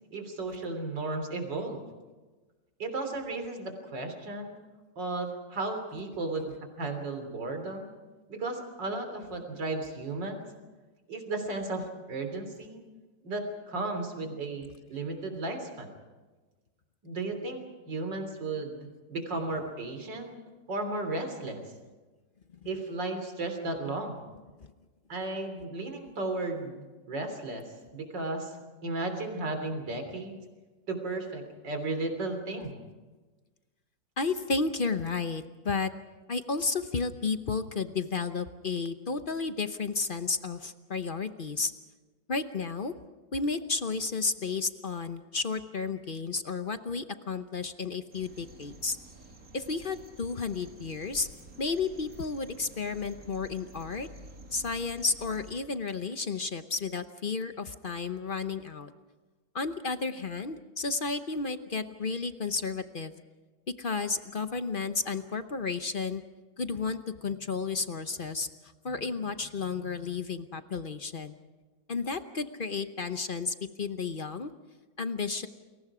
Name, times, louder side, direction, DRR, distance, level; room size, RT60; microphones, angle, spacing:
voice 1, 0.1-1.8 2.8-4.6 5.0-7.9 8.3-10.5 11.1-12.8 13.2-15.9 17.0-17.6 17.9-20.3 20.7-21.6 22.7-24.3 25.1-28.6 28.8-30.4 30.9-32.8, right 2 dB, 70° right, 5 dB, 4.0 m, -34 dB
voice 2, 34.2-35.9 36.3-41.7 42.3-42.9 43.3-49.0 49.5-51.3 51.6-54.1 54.5-58.9 59.5-63.1 63.8-66.2 66.6-71.4 71.9-74.5 75.0-75.5, left 4 dB, 45° left, 10 dB, 0.7 m, -32 dB
sound 1, 48.1-55.6, right 1 dB, 50° right, 2.9 m, -50 dB
30.0 x 22.5 x 5.0 m, 1.3 s
omnidirectional pair, 2.0 m